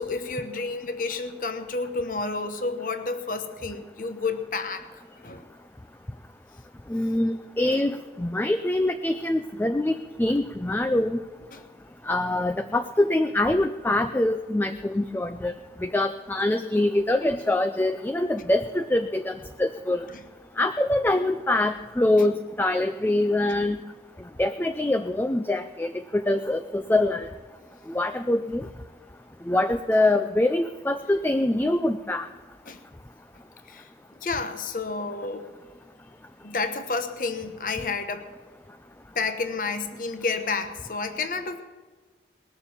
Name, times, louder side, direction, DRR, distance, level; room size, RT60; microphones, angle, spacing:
voice 1, 0.0-4.9 5.2-5.5 7.7-7.8 11.5-11.6 20.1-20.2 32.7-32.8 33.7-33.9 34.2-35.5 36.4-38.3 39.1-41.6, left 4 dB, 50° left, 8 dB, 1.1 m, -30 dB
voice 2, 6.9-11.2 12.0-20.1 20.6-23.8 24.4-27.3 27.9-28.7 29.5-32.3, left 1 dB, 10° left, 8 dB, 0.4 m, -24 dB
20.0 x 7.0 x 7.2 m, 1.4 s
head